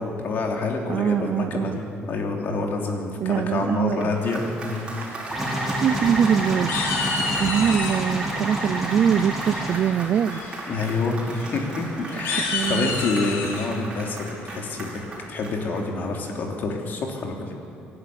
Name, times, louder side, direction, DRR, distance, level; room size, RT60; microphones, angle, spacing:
voice 1, 0.0-4.8 10.7-15.0 15.3-17.5, left 3 dB, 50° left, 1 dB, 3.2 m, -27 dB
voice 2, 0.9-1.8 3.2-4.1 5.7-6.8 7.4-10.4 12.2-12.9, right 8 dB, 45° right, 13 dB, 0.4 m, -23 dB
Applause, 3.9-16.3, right 2 dB, 25° right, 5.4 m, -37 dB
sound 1, 5.3-9.7, right 1 dB, 5° right, 4.9 m, -28 dB
sound 2, 5.9-6.3 6.7-8.1 9.5-9.9 10.3-10.6 10.8-11.0 11.3-11.5 12.1-13.7, left 4 dB, 85° left, 3.0 m, -29 dB
24.5 x 11.5 x 9.7 m, 2.6 s
cardioid pair, 150°, 4 cm